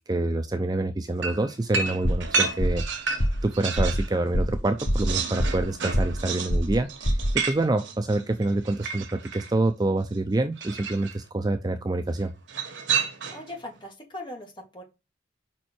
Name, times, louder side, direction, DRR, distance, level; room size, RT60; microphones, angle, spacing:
voice 1, 0.1-2.8 3.1-7.1 7.3-12.3, right 2 dB, 20° right, 7 dB, 0.4 m, -27 dB
sound 1, 1.2-4.1 4.5-9.5 10.6-11.2 12.5-13.5, right 5 dB, 85° right, 1.2 m, -31 dB
sound 2, 2.0-2.3 2.6-2.9 3.2-3.5 3.8-4.0 4.3-4.6 4.9-5.7 5.9-6.2 6.5-6.8 7.0-7.3, equal, 80° left, 1.4 m, -24 dB
voice 2, 13.3-14.8, left 1 dB, 25° left, 1 dB, 1.9 m, -39 dB
5.4 x 4.4 x 4.4 m, 0.26 s
head